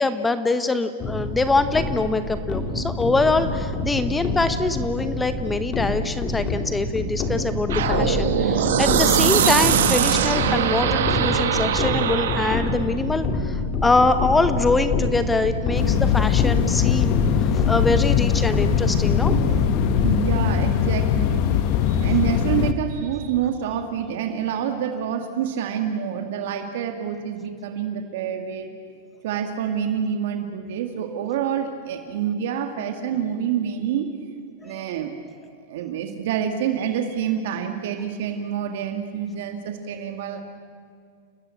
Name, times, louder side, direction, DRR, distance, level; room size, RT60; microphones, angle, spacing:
voice 1, 0.0-19.3 34.7-34.8, left 3 dB, 10° left, 11 dB, 0.8 m, -24 dB
sound 1, 1.0-20.2, left 2 dB, 25° left, 3.4 m, -26 dB
sound 2, 7.7-12.8, right 9 dB, 80° right, 2.1 m, -21 dB
sound 3, 15.7-22.7, left 9 dB, 40° left, 1.2 m, -21 dB
voice 2, 20.0-28.7 29.2-35.1 35.5-40.4, right 8 dB, 60° right, 6 dB, 2.2 m, -27 dB
29.5 x 19.0 x 8.6 m, 2.2 s
supercardioid pair, 160°, 0 cm